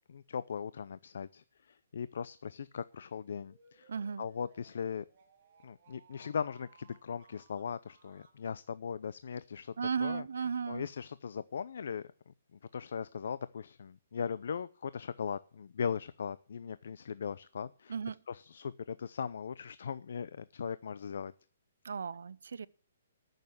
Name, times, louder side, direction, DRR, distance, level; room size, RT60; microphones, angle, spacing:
voice 1, 0.1-3.9 4.2-5.1 5.6-9.7 10.0-10.2 10.7-17.9 18.3-21.3, left 6 dB, 65° left, 0.5 m, -39 dB
sound 1, 3.4-8.4, right 6 dB, 40° right, 3.5 m, -64 dB
voice 2, 3.9-4.3 9.8-10.9 17.9-18.2 21.8-22.7, right 6 dB, 80° right, 0.6 m, -35 dB
14.0 x 6.6 x 8.0 m
hypercardioid pair, 170°, 0 cm